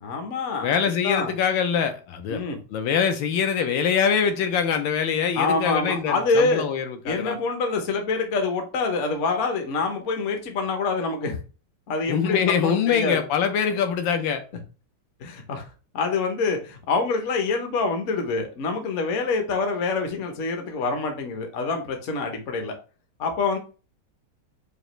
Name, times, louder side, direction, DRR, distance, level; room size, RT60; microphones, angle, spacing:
voice 1, 0.0-0.7 1.0-1.3 2.3-2.6 5.3-6.6 7.0-11.4 11.9-13.2 15.2-15.7 15.9-22.8 23.2-23.6, left 4 dB, 55° left, 0.8 m, -26 dB
voice 2, 0.6-2.4 2.7-7.4 12.1-14.4, left 7 dB, 80° left, 1.3 m, -24 dB
5.0 x 2.4 x 3.0 m
omnidirectional pair, 2.2 m